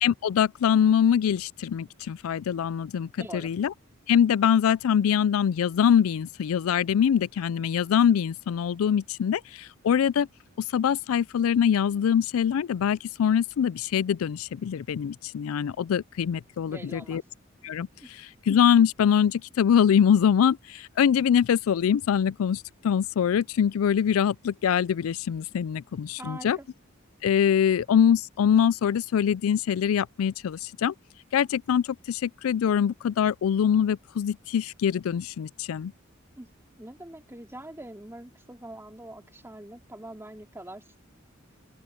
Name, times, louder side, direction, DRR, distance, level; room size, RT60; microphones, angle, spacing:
voice 1, 0.0-3.7 4.1-10.3 10.7-17.2 17.6-17.9 18.5-26.6 27.2-30.9 31.3-35.9, left 8 dB, 85° left, 0.3 m, -23 dB
voice 2, 3.2-3.5 16.7-17.2 18.0-18.1 26.2-26.7 36.4-36.5 36.8-40.8, right 1 dB, 10° right, 2.4 m, -43 dB
open air
head